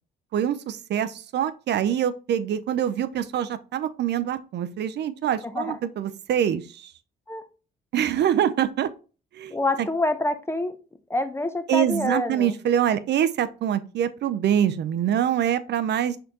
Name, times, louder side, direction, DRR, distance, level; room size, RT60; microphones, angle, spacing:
voice 1, 0.3-6.9 7.9-8.9 9.3-9.5 11.7-16.2, right 10 dB, 60° right, 0.4 m, -25 dB
voice 2, 5.4-5.8 7.3-7.4 9.5-10.8 11.1-12.6, left 2 dB, 15° left, 0.5 m, -26 dB
4.3 x 3.7 x 2.8 m
cardioid pair, 90°, 20 cm